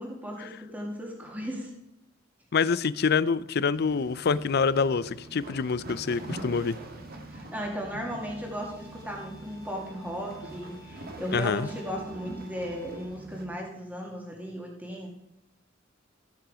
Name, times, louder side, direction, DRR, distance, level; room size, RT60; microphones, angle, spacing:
voice 1, 0.0-1.7 7.3-15.1, equal, 10° right, -1 dB, 2.2 m, -36 dB
voice 2, 2.5-6.8 11.3-11.7, left 5 dB, 55° left, 17 dB, 0.5 m, -26 dB
sound 1, 3.7-13.5, right 1 dB, 50° right, 1.8 m, -44 dB
Bowed string instrument, 8.0-13.1, right 1 dB, 75° right, 4.5 m, -54 dB
14.5 x 7.7 x 5.0 m, 0.86 s
head